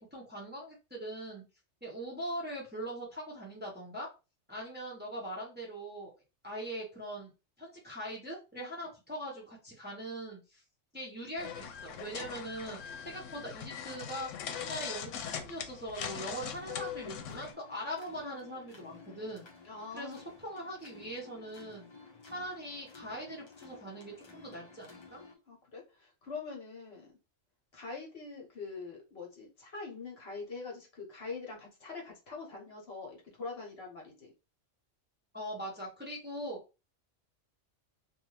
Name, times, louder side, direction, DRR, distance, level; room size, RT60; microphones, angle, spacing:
voice 1, 0.0-1.4 1.8-4.1 4.5-6.1 6.4-7.3 7.6-10.6 10.9-14.3 14.6-19.5 19.9-21.9 22.2-25.2 35.3-36.6, equal, 10° right, -3 dB, 0.8 m, -41 dB
sound 1, 11.4-17.5, left 8 dB, 85° left, 0.9 m, -41 dB
sound 2, 16.2-25.3, left 4 dB, 35° left, 0.5 m, -54 dB
voice 2, 19.6-20.2 25.5-27.1 27.7-34.3, left 4 dB, 60° left, 0 dB, 1.1 m, -44 dB
2.6 x 2.4 x 3.1 m, 0.29 s
omnidirectional pair, 1.2 m